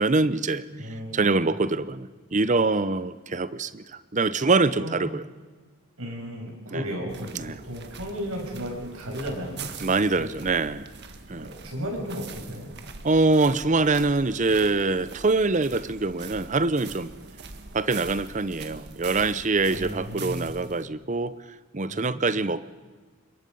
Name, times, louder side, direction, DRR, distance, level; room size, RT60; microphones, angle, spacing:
voice 1, 0.0-0.6 1.1-3.8 4.1-5.2 6.7-6.8 7.4-7.6 9.8-10.9 11.3-11.5 13.0-17.1 17.7-21.3 21.7-22.7, right 3 dB, 35° right, 15 dB, 0.7 m, -24 dB
voice 2, 0.7-1.5 4.7-5.1 6.0-9.7 10.2-10.3 11.4-12.7 19.7-20.5 21.9-22.2, equal, 85° right, 0 dB, 6.4 m, -34 dB
sound 1, 7.1-20.8, right 4 dB, 50° right, 1.6 m, -43 dB
26.0 x 22.0 x 5.5 m, 1.4 s
head